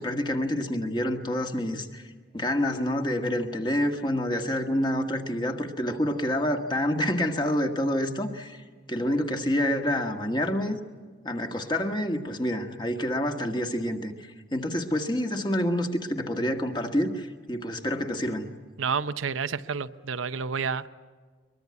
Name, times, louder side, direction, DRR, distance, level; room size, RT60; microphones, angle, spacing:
voice 1, 0.0-2.1 2.3-10.8 11.2-18.5, left 1 dB, 20° left, 5 dB, 1.6 m, -28 dB
voice 2, 18.8-20.9, right 5 dB, 85° right, 11 dB, 0.7 m, -29 dB
23.0 x 21.5 x 9.6 m, 1.5 s
head